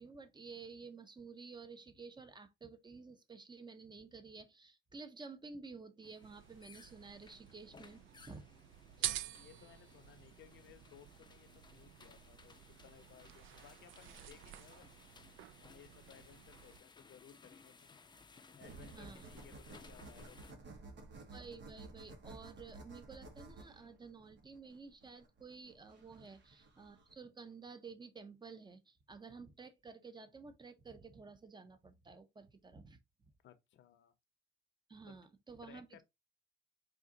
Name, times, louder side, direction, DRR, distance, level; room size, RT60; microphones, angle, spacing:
voice 1, 0.0-8.5 9.0-9.2 19.0-19.3 21.3-33.0 33.2-33.3 34.9-36.0, right 4 dB, 20° right, 0.8 m, -52 dB
sound 1, 6.0-20.5, left 4 dB, 20° left, 0.5 m, -61 dB
sound 2, 6.2-16.8, right 13 dB, 80° right, 0.4 m, -48 dB
voice 2, 9.0-14.9 15.6-17.9 18.5-20.9 26.2-26.3 33.4-34.1 35.0-35.2 35.6-36.0, left 9 dB, 70° left, 0.7 m, -61 dB
sound 3, 18.6-27.1, right 3 dB, 65° right, 1.4 m, -54 dB
4.3 x 2.5 x 3.7 m
cardioid pair, 90°, 20 cm